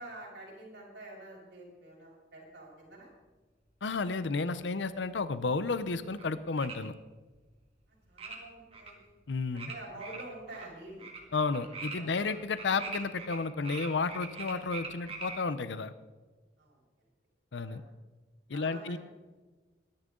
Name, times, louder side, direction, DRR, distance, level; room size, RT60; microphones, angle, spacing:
voice 1, 0.0-3.1 4.2-4.3 8.1-9.1 9.7-11.0 12.0-12.1 16.6-16.8 17.7-17.8 18.5-19.0, right 2 dB, 70° right, -3 dB, 6.0 m, -47 dB
voice 2, 3.8-6.9 9.3-9.7 11.3-15.9 17.5-17.8 18.5-19.0, left 4 dB, 75° left, 13 dB, 0.6 m, -32 dB
sound 1, 6.1-6.2 6.6-6.8 8.2-8.4 8.7-8.9 9.6-9.7 10.0-10.7 11.0-11.2 11.5-13.4 13.6-15.4, right 4 dB, 30° right, 2.1 m, -42 dB
22.5 x 10.5 x 3.8 m, 1.3 s
head